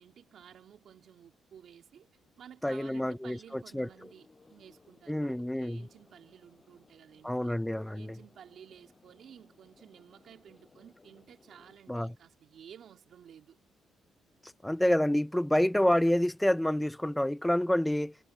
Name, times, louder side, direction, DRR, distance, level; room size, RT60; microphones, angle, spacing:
voice 1, 0.0-2.1 2.4-7.6 7.9-13.6, right 9 dB, 65° right, 2.7 m, -54 dB
voice 2, 2.6-3.9 5.1-5.8 7.2-8.2 11.9-12.1 14.4-18.2, left 1 dB, 5° left, 0.7 m, -28 dB
sound 1, 3.4-11.8, left 3 dB, 25° left, 7.2 m, -63 dB
cardioid pair, 90°, 0 cm